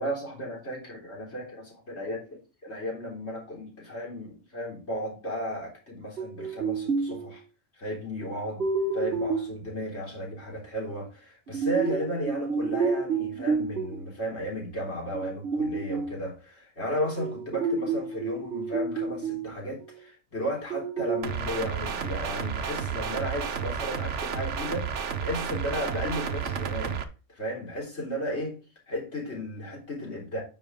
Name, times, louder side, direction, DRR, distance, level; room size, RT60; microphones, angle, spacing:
voice 1, 0.0-7.4 7.7-8.7 8.9-27.0 27.3-28.6 28.9-30.4, equal, 60° left, 4.0 m, -34 dB
sound 1, 6.2-7.3 8.6-9.6 11.5-14.1 15.1-16.3 17.2-19.5 19.8-19.9 20.7-21.3, right 4 dB, 55° right, 1.5 m, -29 dB
sound 2, 21.2-27.0, right 7 dB, 70° right, 1.2 m, -31 dB
10.5 x 5.3 x 3.6 m
omnidirectional pair, 1.3 m